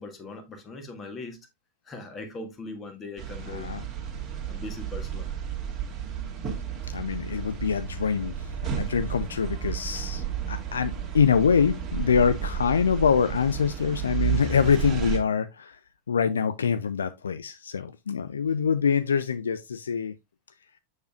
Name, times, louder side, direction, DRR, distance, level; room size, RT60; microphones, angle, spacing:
voice 1, 0.0-1.4 1.8-3.7 4.5-5.3, left 3 dB, 20° left, 1.7 m, -40 dB
sound 1, 3.2-15.2, right 9 dB, 25° right, 1.8 m, -32 dB
voice 2, 3.5-3.8 6.8-8.4 8.8-15.8 16.1-20.1, left 6 dB, 70° left, 0.4 m, -25 dB
6.9 x 6.6 x 2.4 m
figure-of-eight pair, 90°, 0 cm